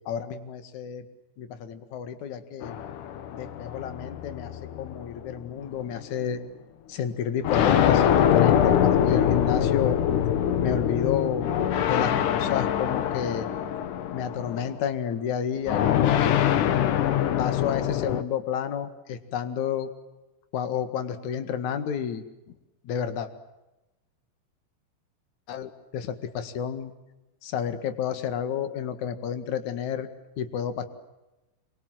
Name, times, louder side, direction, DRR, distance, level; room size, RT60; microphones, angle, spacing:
voice 1, 0.1-1.0 1.4-2.7 3.3-4.5 4.8-6.4 6.9-10.0 10.6-11.5 11.8-13.5 14.1-16.5 17.4-19.9 20.5-22.2 22.8-23.3 25.5-26.9 27.4-30.1 30.4-30.8, left 8 dB, 50° left, 10 dB, 2.5 m, -30 dB
sound 1, 2.6-5.3 6.2-6.3 7.4-14.8 15.7-18.2, left 9 dB, 80° left, 1.8 m, -24 dB
27.0 x 24.5 x 7.7 m, 1.0 s
omnidirectional pair, 5.4 m